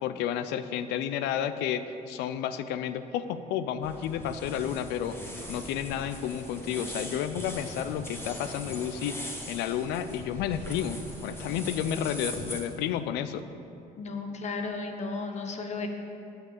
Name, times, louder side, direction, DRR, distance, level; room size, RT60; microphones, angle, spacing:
voice 1, 0.0-5.2 5.5-13.4, left 9 dB, 90° left, 11 dB, 0.5 m, -31 dB
sound 1, 3.8-12.6, left 1 dB, 15° left, 1.7 m, -40 dB
voice 2, 14.0-15.9, left 3 dB, 40° left, 4 dB, 1.1 m, -34 dB
7.9 x 6.4 x 7.4 m, 2.8 s
cardioid pair, 110°, 17 cm